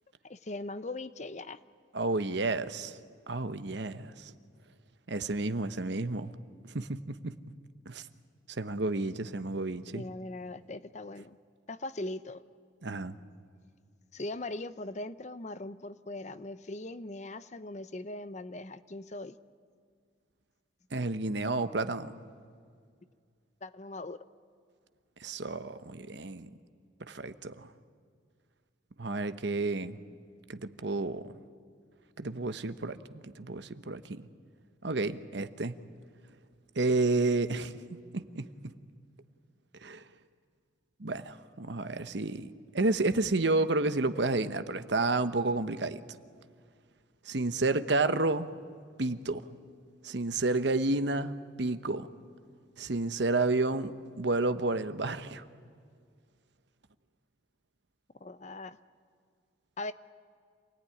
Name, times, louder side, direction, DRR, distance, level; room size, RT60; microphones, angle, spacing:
voice 1, 0.2-1.6 9.9-11.4 11.7-12.4 14.1-19.4 23.6-24.2 58.2-58.8 59.8-59.9, left 2 dB, 35° left, 13 dB, 0.6 m, -40 dB
voice 2, 1.9-3.0 3.3-4.3 5.1-6.3 6.7-7.3 7.9-8.0 8.5-10.1 12.8-13.2 20.9-22.2 25.2-26.5 27.0-27.7 29.0-30.0 30.5-31.3 32.2-34.3 34.8-35.7 36.7-37.7 38.1-38.5 39.8-40.0 41.0-46.0 47.2-48.5 49.0-49.5 50.0-52.1 52.8-55.4, right 2 dB, 60° right, 11 dB, 1.0 m, -31 dB
27.5 x 18.0 x 10.0 m, 2.1 s
head